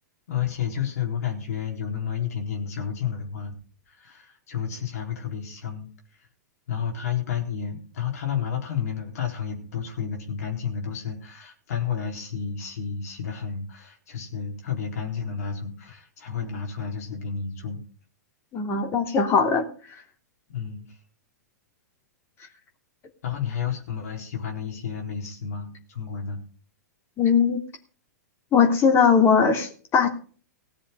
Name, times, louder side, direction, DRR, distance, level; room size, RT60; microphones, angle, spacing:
voice 1, 0.3-3.5 3.9-5.9 6.7-17.8 20.5-21.0 23.2-26.4, left 7 dB, 60° left, 1 dB, 4.1 m, -31 dB
voice 2, 18.5-19.6 27.2-27.6 28.5-30.1, left 6 dB, 25° left, 4 dB, 3.2 m, -20 dB
17.5 x 7.0 x 5.7 m, 0.39 s
figure-of-eight pair, 105°, 9 cm